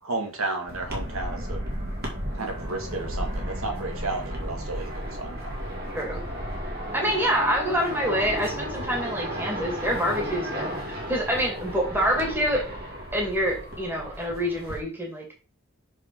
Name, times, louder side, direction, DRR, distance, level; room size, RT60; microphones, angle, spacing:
voice 1, 0.0-1.6 2.4-5.5, right 3 dB, 80° right, 2 dB, 2.1 m, -32 dB
sound 1, 0.7-14.8, equal, 45° right, 2.3 m, -34 dB
voice 2, 5.9-6.2 6.9-10.7 11.1-12.6 13.1-15.3, equal, 10° right, 0 dB, 2.1 m, -26 dB
6.2 x 5.5 x 4.6 m, 0.37 s
head